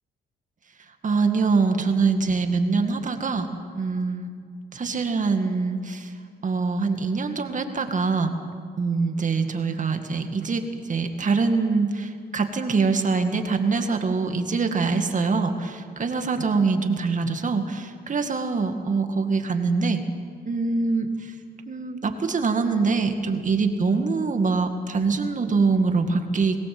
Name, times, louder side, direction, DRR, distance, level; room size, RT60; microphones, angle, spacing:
voice 1, 0.9-3.5 3.7-4.3 4.7-6.2 6.4-8.3 8.8-20.0 20.5-21.4 21.7-26.6, right 4 dB, 40° right, 6 dB, 2.1 m, -24 dB
21.5 x 18.0 x 7.8 m, 2.2 s
cardioid pair, 90°, 20 cm